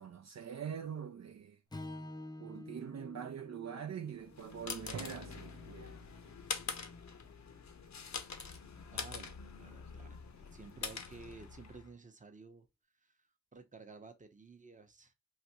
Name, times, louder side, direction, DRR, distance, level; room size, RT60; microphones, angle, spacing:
voice 1, 0.0-1.6 2.4-6.0, right 8 dB, 60° right, 0.5 m, -44 dB
Strum, 1.7-6.0, left 1 dB, 15° left, 0.5 m, -50 dB
sound 1, 4.2-11.9, left 5 dB, 65° left, 0.7 m, -45 dB
Drum, 4.9-7.7, right 6 dB, 85° right, 0.8 m, -51 dB
voice 2, 8.9-12.7 13.0-15.1, right 4 dB, 25° right, 0.7 m, -54 dB
3.3 x 2.6 x 2.8 m
wide cardioid pair, 65°, 30 cm